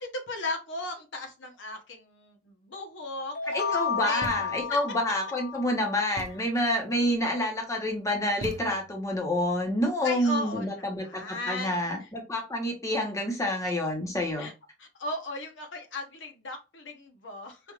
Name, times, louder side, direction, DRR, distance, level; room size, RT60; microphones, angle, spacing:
voice 1, 0.0-4.3 10.0-11.8 14.4-14.5 14.8-17.6, left 2 dB, 85° left, 4 dB, 0.9 m, -37 dB
sound 1, 3.3-6.1, left 6 dB, 55° left, 0.5 m, -32 dB
voice 2, 3.5-14.5, left 1 dB, 15° left, 2 dB, 0.9 m, -28 dB
Thump thud, 4.2-4.8 6.2-6.6 8.4-9.1, right 2 dB, 40° right, 0.4 m, -40 dB
5.0 x 2.4 x 3.0 m, 0.29 s
head